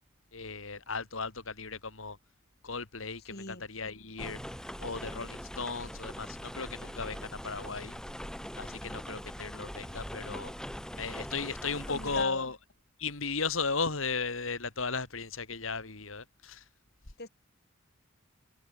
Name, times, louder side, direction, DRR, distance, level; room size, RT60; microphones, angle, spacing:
voice 1, 0.3-2.2 2.6-4.4 4.8-8.0 8.5-10.5 10.9-12.6 13.0-16.6, left 4 dB, 80° left, 2.7 m, -36 dB
voice 2, 3.3-3.6 11.9-12.5 17.2-17.3, left 3 dB, 50° left, 4.8 m, -38 dB
sound 1, 4.2-12.2, equal, 5° left, 4.3 m, -42 dB
head